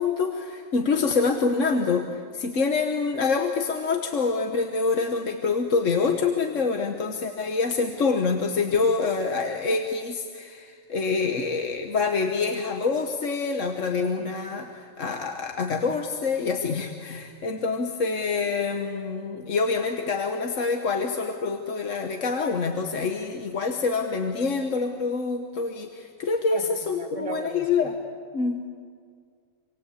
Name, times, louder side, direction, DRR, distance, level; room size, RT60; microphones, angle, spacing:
voice 1, 0.0-28.0 28.3-28.6, left 4 dB, 65° left, 4 dB, 1.6 m, -26 dB
voice 2, 26.5-27.9, right 4 dB, 25° right, 6 dB, 1.7 m, -37 dB
27.0 x 26.0 x 8.4 m, 2.1 s
omnidirectional pair, 1.4 m